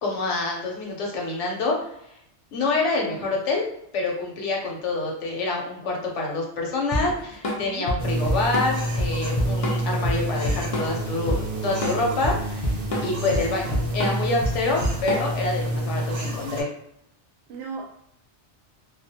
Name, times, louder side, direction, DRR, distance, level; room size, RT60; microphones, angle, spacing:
voice 1, 0.0-2.2 2.5-3.6 3.9-16.7, left 3 dB, 85° left, 0 dB, 1.0 m, -27 dB
Drum kit / Drum, 6.9-15.5, left 1 dB, 50° left, 0.4 m, -27 dB
voice 2, 7.6-7.9 17.5-18.0, right 4 dB, 70° right, 2 dB, 0.8 m, -37 dB
sound 1, 8.0-16.6, right 1 dB, 45° right, 0.4 m, -29 dB
2.4 x 2.1 x 2.7 m, 0.77 s
omnidirectional pair, 1.2 m